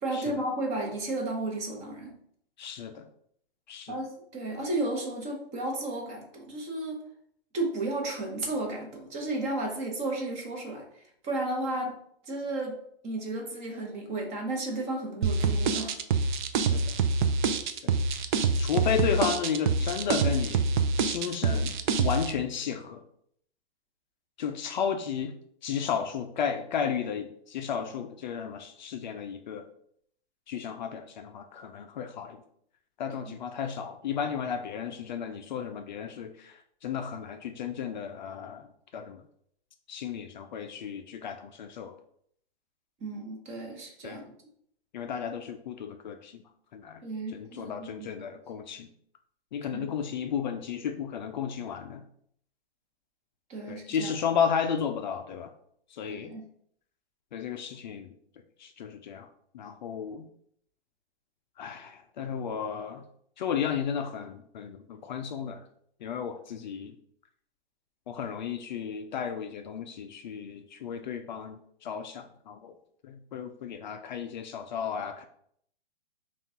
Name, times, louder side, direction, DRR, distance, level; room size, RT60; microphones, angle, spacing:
voice 1, 0.0-2.1 3.9-7.0 7.5-12.0 12.2-16.0 43.0-44.2 47.0-48.1 49.7-49.9 53.5-54.1 56.1-56.4, right 2 dB, 20° right, 1 dB, 0.9 m, -33 dB
voice 2, 2.6-3.1 3.7-4.0 16.7-16.9 17.8-17.9 18.6-20.7 21.0-23.0 24.4-25.3 25.6-29.7 30.5-32.4 33.0-38.7 38.9-39.2 39.9-41.9 44.0-44.2 44.9-46.4 46.7-47.0 47.3-48.9 49.5-52.0 53.7-55.5 55.9-56.3 57.3-58.1 58.6-59.3 59.5-60.3 61.6-63.0 63.4-65.6 66.0-67.0 68.1-72.8 73.0-75.2, left 7 dB, 50° left, 6 dB, 0.4 m, -33 dB
sound 1, 15.2-22.3, right 4 dB, 50° right, 0.5 m, -26 dB
5.6 x 2.4 x 2.8 m, 0.67 s
hypercardioid pair, 135°, 31 cm